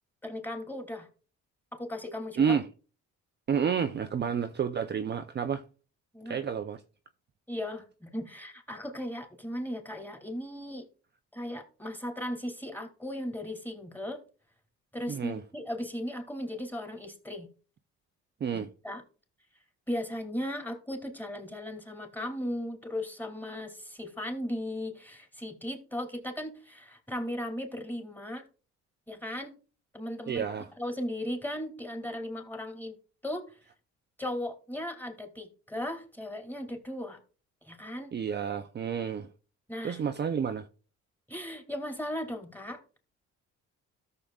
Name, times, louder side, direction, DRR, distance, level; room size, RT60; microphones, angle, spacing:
voice 1, 0.2-1.1 1.7-2.6 6.1-6.4 7.5-10.8 11.3-14.2 14.9-17.5 18.5-19.0 19.9-28.5 29.1-29.6 29.9-33.0 33.2-33.6 34.2-37.2 37.6-38.1 39.7-40.0 41.3-42.8, left 1 dB, 5° left, 2.7 m, -37 dB
voice 2, 2.4-2.7 3.5-5.6 6.3-6.8 15.1-15.4 18.4-18.7 30.3-30.7 38.1-39.3 39.8-40.7, right 7 dB, 35° right, 0.6 m, -30 dB
13.5 x 6.7 x 2.4 m
cardioid pair, 80°, 30 cm